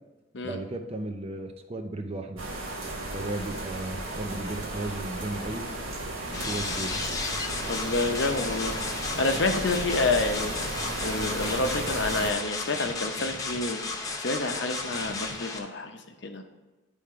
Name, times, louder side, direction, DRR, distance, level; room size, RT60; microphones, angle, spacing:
voice 1, 0.4-2.4 3.1-5.6 6.3-7.0, right 2 dB, 30° right, 5 dB, 0.5 m, -35 dB
sound 1, 2.4-12.3, right 1 dB, 85° right, 1.4 m, -35 dB
sound 2, 6.3-15.6, left 3 dB, 15° left, 0.6 m, -34 dB
voice 2, 7.6-8.8 9.2-10.5 11.0-13.8 14.2-16.4, left 2 dB, 60° left, 5 dB, 0.7 m, -28 dB
10.0 x 3.5 x 4.7 m, 1.1 s
head